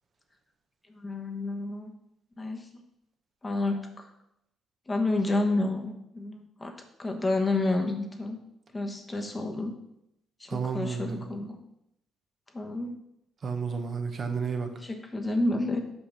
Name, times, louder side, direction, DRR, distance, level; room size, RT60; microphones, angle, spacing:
voice 1, 1.0-1.9 2.4-2.6 3.4-3.9 4.9-6.7 7.0-8.4 8.7-9.7 10.4-11.6 12.5-12.9 14.7-15.8, left 2 dB, 25° left, 3 dB, 1.2 m, -29 dB
voice 2, 10.5-11.2 13.4-14.7, right 5 dB, 50° right, 5 dB, 1.0 m, -31 dB
5.8 x 5.6 x 5.7 m, 0.82 s
cardioid pair, 90°, 0 cm